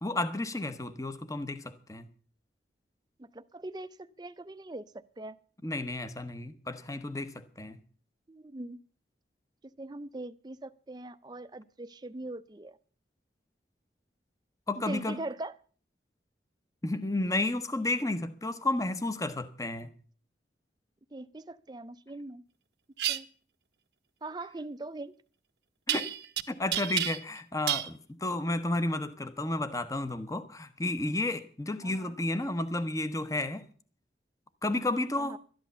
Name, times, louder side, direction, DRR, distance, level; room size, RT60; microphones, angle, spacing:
voice 1, 0.0-2.1 5.6-7.8 14.7-15.2 16.8-19.9 25.9-26.1 26.5-33.6 34.6-35.4, left 2 dB, 20° left, 0.9 m, -32 dB
voice 2, 3.2-4.9 5.2-5.4 8.3-8.8 9.6-12.8 14.8-15.5 21.1-22.4 23.1-23.3 24.2-25.1 31.8-32.1 35.1-35.4, right 2 dB, 25° right, 0.5 m, -41 dB
sound 1, 23.0-23.2 25.9-26.4 26.7-27.4 27.7-27.9, right 12 dB, 70° right, 0.8 m, -30 dB
12.5 x 10.5 x 6.7 m
head